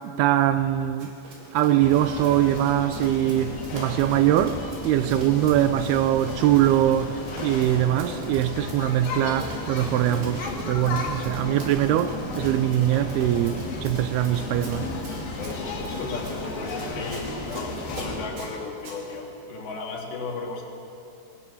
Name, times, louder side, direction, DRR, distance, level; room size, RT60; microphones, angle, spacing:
voice 1, 0.2-1.1 1.5-14.9, right 12 dB, 80° right, 2.4 m, -22 dB
Run, 1.0-19.0, right 2 dB, 60° right, 5.5 m, -42 dB
sound 1, 1.8-18.3, left 2 dB, 60° left, 4.0 m, -33 dB
voice 2, 15.9-20.6, left 4 dB, 75° left, 4.8 m, -35 dB
22.5 x 20.0 x 7.1 m
omnidirectional pair, 5.0 m